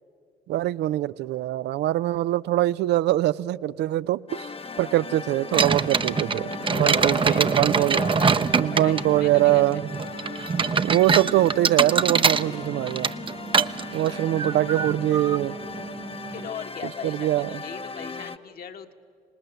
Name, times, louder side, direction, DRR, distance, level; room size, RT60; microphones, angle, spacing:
voice 1, 0.5-4.5 4.8-6.5 6.8-8.0 8.6-9.9 10.8-13.1 13.9-15.6 16.8-17.6, right 15 dB, 70° right, 0.4 m, -23 dB
sound 1, 4.3-18.4, left 4 dB, 30° left, 0.9 m, -38 dB
sound 2, 5.5-16.5, right 5 dB, 30° right, 0.7 m, -25 dB
voice 2, 6.7-8.4 8.8-9.8 14.1-14.2 16.3-18.9, left 7 dB, 55° left, 1.5 m, -38 dB
26.0 x 19.0 x 8.0 m
supercardioid pair, 60°, 18 cm